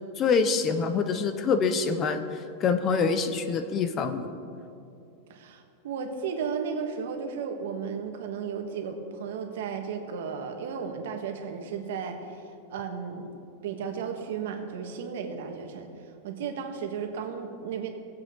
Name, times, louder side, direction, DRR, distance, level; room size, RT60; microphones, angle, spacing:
voice 1, 0.2-4.4, left 5 dB, 25° left, 9 dB, 0.5 m, -26 dB
voice 2, 5.3-13.3 13.6-15.9 16.2-17.9, right 6 dB, 70° right, 4 dB, 1.4 m, -34 dB
18.5 x 7.7 x 3.7 m, 2.6 s
supercardioid pair, 165°, 0 cm